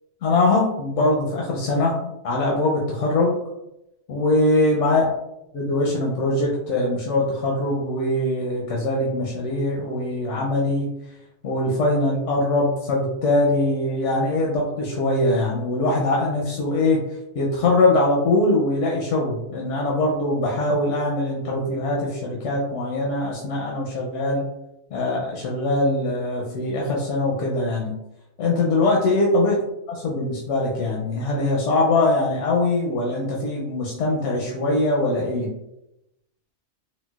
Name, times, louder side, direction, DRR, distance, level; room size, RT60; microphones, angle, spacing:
voice 1, 0.2-3.3 4.1-5.0 5.5-10.9 11.4-17.0 17.4-24.5 24.9-27.9 28.4-29.6 30.0-35.5, left 2 dB, 80° left, -2 dB, 0.9 m, -22 dB
3.9 x 2.1 x 2.3 m, 0.87 s
omnidirectional pair, 1.2 m